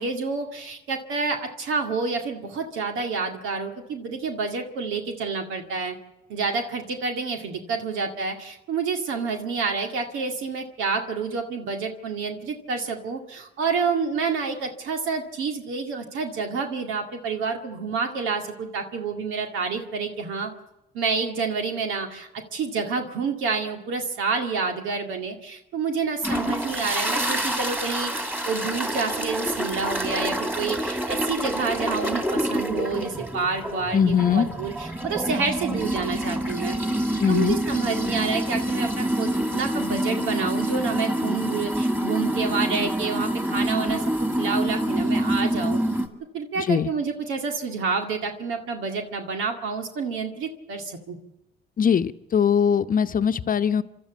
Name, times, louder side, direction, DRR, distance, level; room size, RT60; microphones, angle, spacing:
voice 1, 0.0-6.0 6.3-20.5 20.9-36.8 37.3-44.0 44.4-45.8 46.3-51.2, right 5 dB, 90° right, 4 dB, 2.1 m, -28 dB
sound 1, 26.2-46.1, right 1 dB, 10° right, 2.4 m, -27 dB
voice 2, 33.9-34.5 37.2-37.6 46.6-46.9 51.8-53.8, left 7 dB, 45° left, 11 dB, 0.9 m, -21 dB
29.0 x 12.5 x 8.3 m, 0.92 s
cardioid pair, 90°, 20 cm